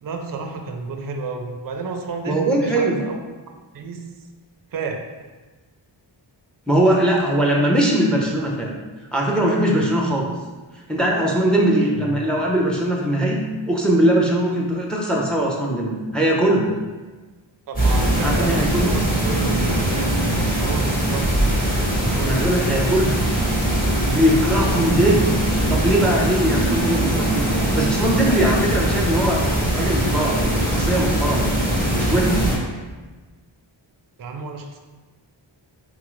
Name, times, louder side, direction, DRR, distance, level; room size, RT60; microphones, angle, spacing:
voice 1, 0.0-3.2 3.7-4.0 4.7-5.0 11.8-12.2 17.7-20.1 20.5-21.5 22.1-22.9 24.5-24.9 34.2-34.8, right 4 dB, 45° right, 3 dB, 0.5 m, -31 dB
voice 2, 2.2-2.9 6.7-8.7 9.1-10.3 10.9-13.4 13.7-16.7 18.2-19.0 22.2-23.2 24.0-25.2 25.7-27.4 27.7-29.4 29.7-31.5 31.9-32.5, right 1 dB, ahead, -2 dB, 0.6 m, -20 dB
sound 1, 17.7-32.5, right 1 dB, 20° left, 1.5 m, -21 dB
3.7 x 3.7 x 3.1 m, 1.3 s
wide cardioid pair, 115°, 47 cm